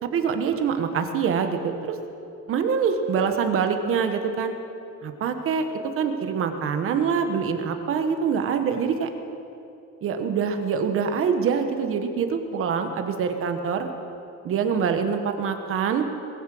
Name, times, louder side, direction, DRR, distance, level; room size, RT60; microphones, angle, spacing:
voice 1, 0.0-2.0 2.5-4.5 5.0-5.7 6.0-9.1 10.0-13.9 14.4-16.1, right 6 dB, 45° right, 7 dB, 1.2 m, -25 dB
21.0 x 7.5 x 7.7 m, 2.7 s
cardioid pair, 180°, 30 cm